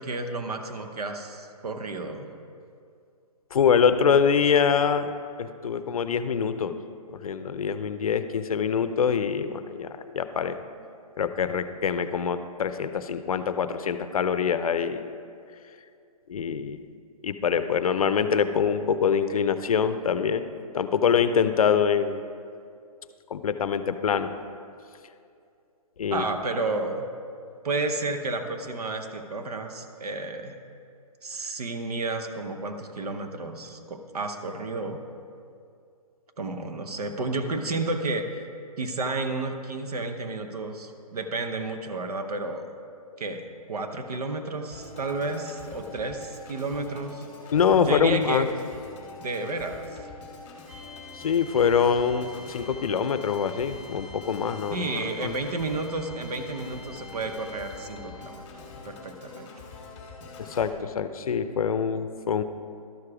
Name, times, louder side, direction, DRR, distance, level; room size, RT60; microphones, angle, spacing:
voice 1, 0.0-2.3 26.1-27.1 27.6-30.5 31.2-35.0 36.4-38.3 38.8-42.7 43.2-47.3 47.8-48.5 49.2-50.0 54.7-58.4 58.8-59.5, right 3 dB, 80° right, 6 dB, 1.0 m, -31 dB
voice 2, 3.5-5.1 5.4-6.8 7.1-10.6 11.2-15.0 16.3-16.8 17.2-20.5 20.7-22.2 23.3-24.3 26.0-26.2 47.5-48.5 51.1-55.4 60.5-62.4, left 7 dB, 70° left, 11 dB, 0.5 m, -24 dB
Organ, 44.7-60.7, left 3 dB, 20° left, 1.4 m, -44 dB
sound 1, 50.7-58.4, left 3 dB, 15° right, 0.6 m, -48 dB
12.0 x 4.8 x 4.9 m, 2.4 s
hypercardioid pair, 170°, 19 cm